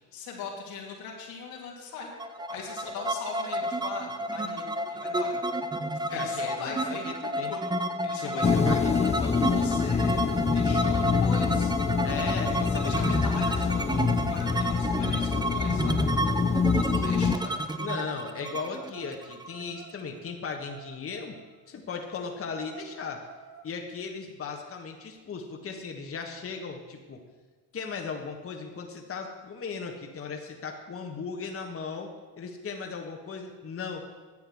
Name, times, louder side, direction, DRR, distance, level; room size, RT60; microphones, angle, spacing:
voice 1, 0.1-2.1 2.5-5.4 6.0-7.0 7.4-7.6 8.0-10.2 10.5-11.7 12.5-16.0 16.7-17.6, left 5 dB, 85° left, -2 dB, 3.1 m, -40 dB
sound 1, 2.2-19.9, right 1 dB, 10° right, 0.8 m, -31 dB
voice 2, 6.1-7.5 8.2-9.2 12.0-13.0 17.8-21.4 21.7-23.2 23.6-27.2 27.7-34.0, left 5 dB, 40° left, 2 dB, 1.5 m, -37 dB
sound 2, 8.4-17.3, left 5 dB, 20° left, 0.5 m, -26 dB
sound 3, 16.4-17.5 18.7-21.6 22.0-22.1 22.4-23.7, right 7 dB, 40° right, 2.1 m, -54 dB
11.0 x 7.7 x 7.8 m, 1.4 s
supercardioid pair, 85°, 35 cm